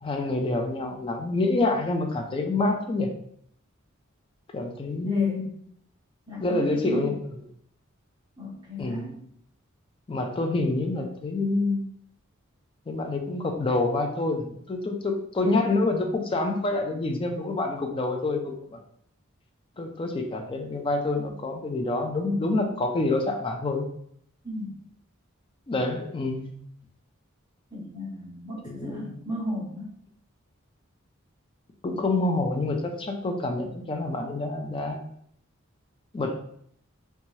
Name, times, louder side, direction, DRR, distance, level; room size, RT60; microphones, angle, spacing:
voice 1, 0.0-3.1 4.5-5.5 6.4-7.4 8.8-9.1 10.1-11.8 12.9-18.8 19.8-23.9 25.7-26.5 28.6-29.1 31.8-35.1 36.1-36.3, left 2 dB, 25° left, 4 dB, 0.3 m, -27 dB
voice 2, 5.0-5.4 6.3-7.1 8.4-9.2 24.4-24.7 27.7-29.9, equal, 20° right, -8 dB, 0.7 m, -35 dB
2.7 x 2.2 x 3.0 m, 0.68 s
head